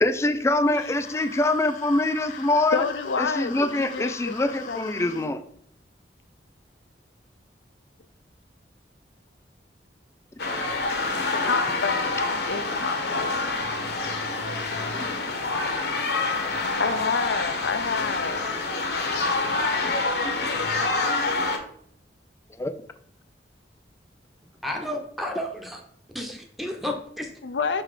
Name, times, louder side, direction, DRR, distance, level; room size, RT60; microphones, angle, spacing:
voice 1, 0.0-2.8 3.2-5.4 14.9-15.1 22.6-22.7, left 2 dB, 15° left, 11 dB, 0.3 m, -24 dB
sound 1, 0.7-5.3, left 5 dB, 45° left, 0.7 m, -41 dB
voice 2, 2.7-5.3 11.3-13.4 16.8-18.4 27.4-27.8, left 5 dB, 90° left, 11 dB, 0.6 m, -29 dB
sound 2, 10.4-21.6, left 3 dB, 65° left, 1.0 m, -27 dB
voice 3, 24.6-25.8 26.1-27.3, left 1 dB, ahead, 2 dB, 0.7 m, -32 dB
5.6 x 3.9 x 4.8 m, 0.68 s
head